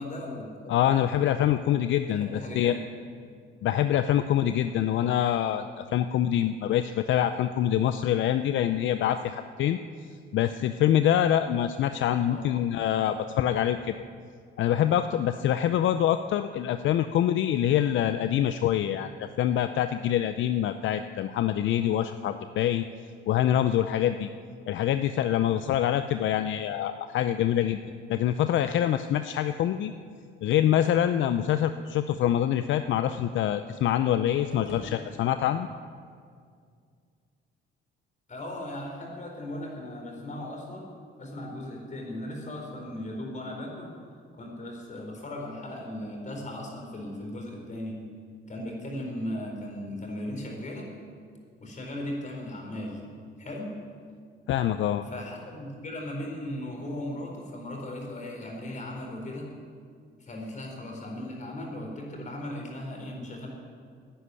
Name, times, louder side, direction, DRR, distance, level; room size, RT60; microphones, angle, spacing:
voice 1, 0.0-0.7 2.1-2.9 12.3-12.5 38.3-40.9 41.2-43.9 44.4-48.0 48.5-50.9 51.6-53.1 53.4-53.7 55.1-59.5 60.2-63.5, left 1 dB, 40° left, 0 dB, 4.4 m, -37 dB
voice 2, 0.7-2.7 3.6-9.8 10.3-13.9 14.6-22.8 23.3-24.3 24.7-27.8 28.1-29.9 30.4-35.7 54.5-55.0, left 11 dB, 75° left, 10 dB, 0.6 m, -25 dB
sound 1, 34.3-35.8, equal, 90° right, 3.2 m, -46 dB
11.5 x 10.0 x 9.7 m, 2.2 s
cardioid pair, 90°, 20 cm